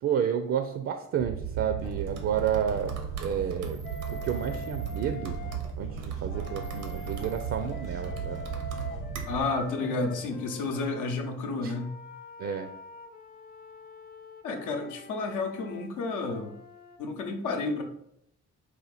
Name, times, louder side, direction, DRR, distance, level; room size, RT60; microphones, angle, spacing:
voice 1, 0.0-2.9 3.2-3.8 4.1-5.4 5.8-8.4 11.6-11.7 12.4-12.7, right 8 dB, 50° right, 7 dB, 0.4 m, -30 dB
sound 1, 1.2-9.4, right 7 dB, 85° right, 0.8 m, -35 dB
sound 2, 1.8-10.9, left 3 dB, 50° left, 1.0 m, -49 dB
Wind instrument woodwind instrument, 3.8-5.6 6.3-11.1 11.7-17.0, left 2 dB, 30° left, 0.5 m, -45 dB
voice 2, 9.3-11.9 14.4-16.5 17.0-17.8, left 3 dB, 85° left, 3 dB, 0.8 m, -31 dB
4.1 x 2.5 x 4.1 m, 0.74 s
cardioid pair, 90°, 30 cm